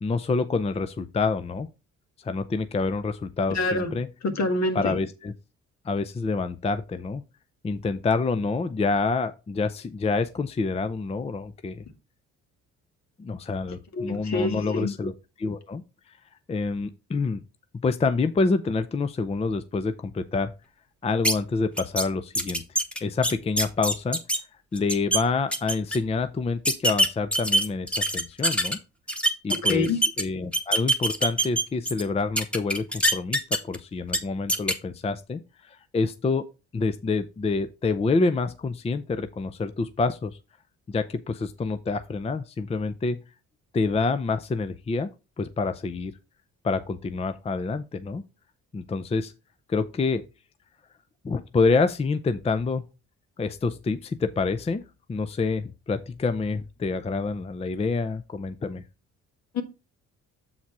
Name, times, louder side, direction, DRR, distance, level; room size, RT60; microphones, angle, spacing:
voice 1, 0.0-1.7 2.2-4.1 4.8-5.1 5.8-7.2 7.6-11.8 13.2-15.1 15.4-15.8 16.5-17.4 17.8-20.5 21.0-22.6 23.0-24.2 24.7-28.8 29.4-29.9 30.2-36.4 36.7-40.4 40.9-43.2 43.7-45.1 45.4-46.1 46.6-48.2 48.7-49.3 49.7-50.2 51.2-52.9 53.4-54.8 55.1-58.8, left 4 dB, 20° left, 0.5 m, -27 dB
voice 2, 3.5-4.0 4.2-5.0 13.9-14.9 29.5-30.0 59.5-59.6, left 3 dB, 65° left, 1.7 m, -26 dB
sound 1, 21.2-21.3 21.8-22.0 22.3-24.4 24.8-25.2 25.5-26.0 26.6-28.7 29.1-30.2 30.5-32.0 32.4-33.8 34.1-34.2 34.5-34.7, right 1 dB, 5° left, 1.2 m, -23 dB
7.4 x 4.0 x 4.6 m
cardioid pair, 90°, 30 cm